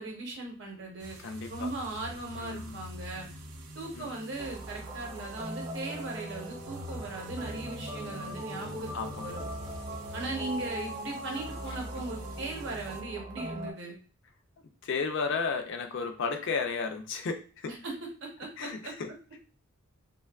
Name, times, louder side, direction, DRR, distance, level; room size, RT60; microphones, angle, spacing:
voice 1, 0.0-1.2 1.5-3.3 3.7-9.4 10.1-13.9 17.6-17.9 18.2-18.9, right 2 dB, 55° right, -1 dB, 0.8 m, -38 dB
sound 1, 1.0-13.0, equal, 80° right, 0.5 m, -46 dB
voice 2, 1.2-1.7 2.3-2.7 4.0-4.1 8.9-9.2 14.8-17.4 18.6-19.1, left 5 dB, 55° left, 5 dB, 0.3 m, -33 dB
sound 2, 4.4-13.7, right 1 dB, 20° right, 0.4 m, -40 dB
2.7 x 2.2 x 2.3 m, 0.40 s
head